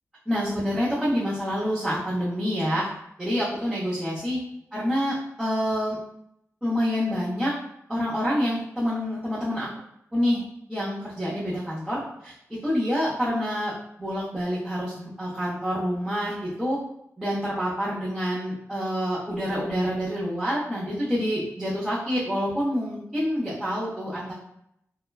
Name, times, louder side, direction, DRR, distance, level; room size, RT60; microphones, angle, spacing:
voice 1, 0.3-2.9 3.2-4.4 4.7-6.0 6.6-7.5 7.9-9.7 10.1-12.3 12.6-13.7 14.0-16.8 17.2-24.3, equal, 10° right, -10 dB, 0.8 m, -27 dB
2.8 x 2.2 x 2.3 m, 0.74 s
wide cardioid pair, 120°, 6 cm